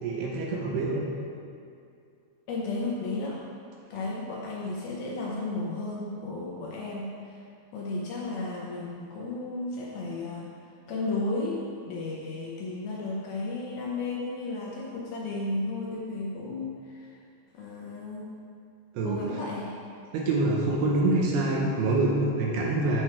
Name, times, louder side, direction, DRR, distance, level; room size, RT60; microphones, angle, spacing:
voice 1, 0.0-1.0 18.9-19.2 20.1-23.0, right 2 dB, 75° right, -1 dB, 2.5 m, -26 dB
voice 2, 2.5-3.5 3.9-7.4 7.7-10.5 10.9-17.2 17.5-18.3 19.0-19.8, left 2 dB, 75° left, -3 dB, 2.3 m, -33 dB
8.3 x 7.0 x 4.4 m, 2.4 s
omnidirectional pair, 5.1 m